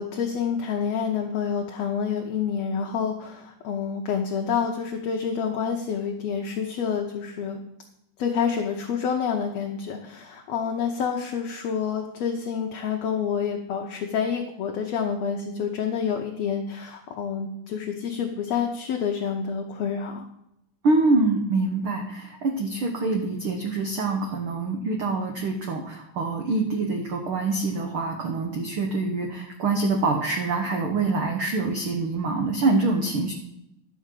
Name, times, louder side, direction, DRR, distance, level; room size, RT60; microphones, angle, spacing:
voice 1, 0.0-7.6 8.2-20.2, left 7 dB, 70° left, 2 dB, 1.6 m, -28 dB
voice 2, 20.8-33.3, right 3 dB, 70° right, 2 dB, 1.2 m, -25 dB
11.5 x 4.9 x 7.4 m, 0.82 s
omnidirectional pair, 3.9 m